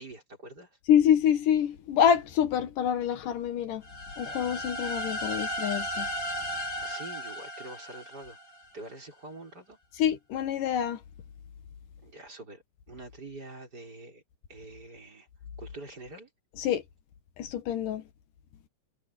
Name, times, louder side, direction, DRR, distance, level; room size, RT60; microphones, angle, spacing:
voice 1, 0.0-0.8 6.8-8.4 8.7-9.8 12.0-14.2 14.5-15.3 15.6-16.3, right 2 dB, 30° right, 5.7 m, -45 dB
voice 2, 0.9-3.8 4.2-6.1 10.0-11.0 16.6-16.8 17.4-18.0, left 9 dB, 75° left, 3.0 m, -26 dB
sound 1, 3.8-8.7, equal, 35° left, 5.6 m, -35 dB
omnidirectional pair, 3.8 m